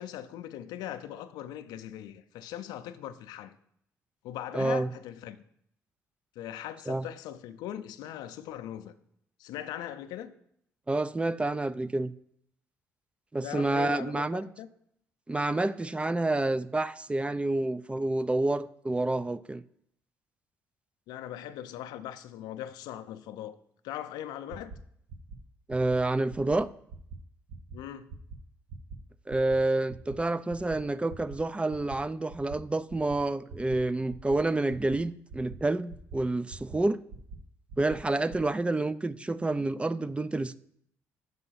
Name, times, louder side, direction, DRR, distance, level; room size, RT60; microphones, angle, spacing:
voice 1, 0.0-3.6 4.2-5.4 6.4-8.9 9.4-10.3 13.4-14.7 21.1-23.6 23.8-24.7 27.7-28.1, left 11 dB, 80° left, 0.5 m, -40 dB
voice 2, 4.5-4.9 6.9-7.1 10.9-12.1 13.3-14.5 15.3-19.6 25.7-26.7 29.3-37.0 37.8-40.6, right 2 dB, 15° right, 0.4 m, -28 dB
sound 1, 24.5-24.8 25.1-25.4 25.7-26.0 26.3-26.6 26.9-27.2 27.5-27.8 28.1-28.4 28.7-29.0 29.3-29.6 29.9-30.2 30.5-30.8 31.1-31.4 31.7-32.0 32.3-32.6 32.9-33.2 33.5-33.8 34.1-34.4 34.7-35.0 35.3-35.6 35.9-36.2 36.5-36.8 37.1-37.4 37.7-38.0 38.3-38.4, right 5 dB, 70° right, 0.9 m, -44 dB
5.9 x 5.5 x 5.7 m
supercardioid pair, 65°, 7 cm